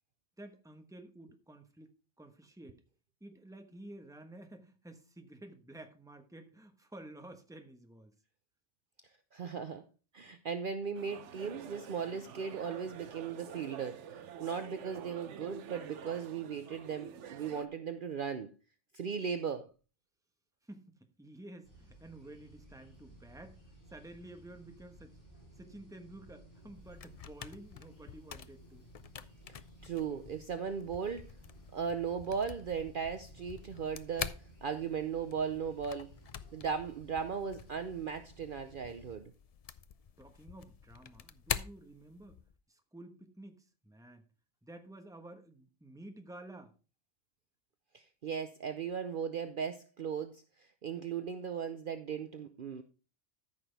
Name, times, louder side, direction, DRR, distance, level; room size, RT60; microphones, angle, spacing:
voice 1, 0.4-2.8 3.2-8.1 20.6-23.6 23.9-25.2 25.6-28.8 40.2-42.4 42.7-44.2 44.6-46.7, right 1 dB, 5° right, 6 dB, 1.1 m, -52 dB
voice 2, 9.3-9.8 10.1-18.5 18.9-19.7 29.8-31.3 31.7-36.1 36.5-39.3 47.9-52.8, right 6 dB, 55° right, 9 dB, 0.8 m, -37 dB
sound 1, 10.9-17.7, right 8 dB, 80° right, 1.0 m, -48 dB
sound 2, 21.6-39.2, right 1 dB, 75° left, 5.4 m, -57 dB
sound 3, 26.6-42.5, left 7 dB, 55° left, 0.4 m, -46 dB
13.5 x 6.1 x 3.4 m, 0.33 s
omnidirectional pair, 1.2 m